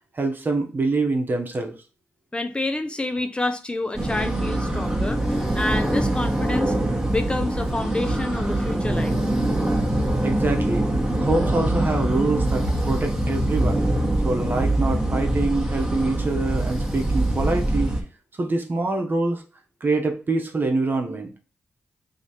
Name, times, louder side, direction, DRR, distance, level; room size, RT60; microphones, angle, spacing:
voice 1, 0.1-1.7 10.2-13.8 14.2-17.9 18.4-19.4 19.8-21.3, right 3 dB, 45° right, 3 dB, 1.0 m, -25 dB
voice 2, 2.3-6.8 7.1-9.2, left 2 dB, 20° left, 8 dB, 0.5 m, -28 dB
sound 1, 3.9-18.0, right 1 dB, 15° right, 1.3 m, -23 dB
3.2 x 2.9 x 4.2 m, 0.35 s
cardioid pair, 55°, 5 cm